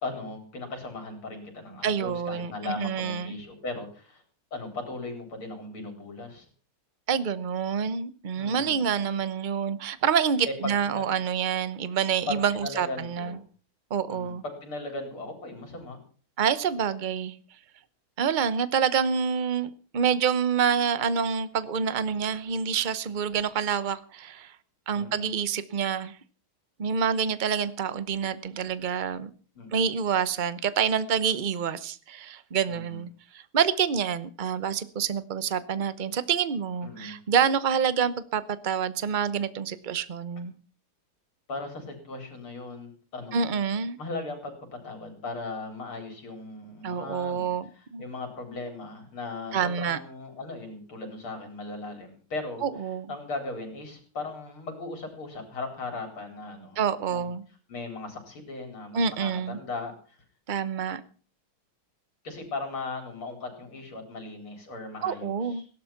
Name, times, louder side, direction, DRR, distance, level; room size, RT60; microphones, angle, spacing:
voice 1, 0.0-4.2 4.5-6.5 8.4-8.8 10.4-11.1 12.3-13.4 14.1-16.0 24.9-25.3 29.6-30.0 32.7-33.0 36.8-37.2 41.5-43.6 44.0-52.7 53.1-56.8 57.0-57.3 57.7-60.2 62.2-65.6, left 3 dB, 90° left, 5.3 m, -38 dB
voice 2, 1.8-3.4 7.1-13.4 13.9-14.4 16.4-17.4 18.2-24.5 24.9-26.1 26.8-29.3 29.7-33.1 33.3-40.5 43.3-44.0 46.8-47.6 47.9-48.0 49.5-50.0 52.6-53.1 56.8-57.4 58.9-59.6 60.5-61.0 65.0-65.6, right 7 dB, 55° right, 0.5 m, -27 dB
17.0 x 12.0 x 5.9 m
omnidirectional pair, 2.3 m